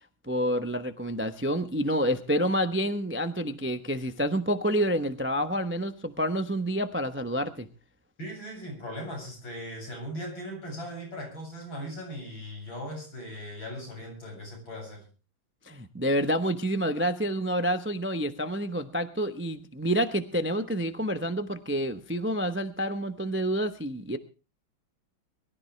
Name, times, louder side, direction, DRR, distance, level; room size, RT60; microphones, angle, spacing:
voice 1, 0.2-7.7 15.6-24.2, equal, 15° right, 9 dB, 0.5 m, -28 dB
voice 2, 8.2-15.0, equal, 75° left, 1 dB, 8.4 m, -39 dB
23.0 x 13.5 x 3.3 m, 0.34 s
omnidirectional pair, 2.2 m